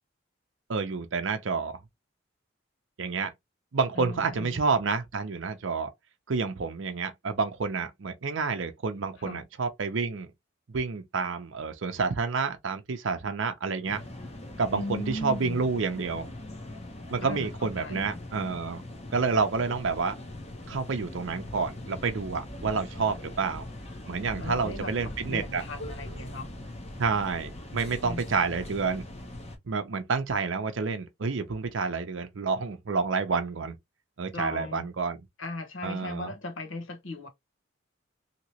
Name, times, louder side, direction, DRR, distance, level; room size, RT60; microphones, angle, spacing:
voice 1, 0.7-1.7 3.0-3.3 3.7-5.9 6.3-10.3 10.7-14.0 14.6-16.3 17.1-18.8 19.1-20.2 20.7-23.7 24.1-25.6 27.0-29.1 29.7-33.7 34.2-35.2 35.8-36.3, right 4 dB, 75° right, 0.6 m, -29 dB
voice 2, 3.9-4.6 9.2-9.4 14.7-15.6 17.2-18.2 24.2-24.9 25.3-26.5 28.0-28.2 34.3-34.9 35.4-37.3, left 1 dB, 80° left, 1.0 m, -37 dB
sound 1, 13.9-29.6, left 1 dB, 30° left, 0.8 m, -41 dB
2.9 x 2.9 x 2.8 m
head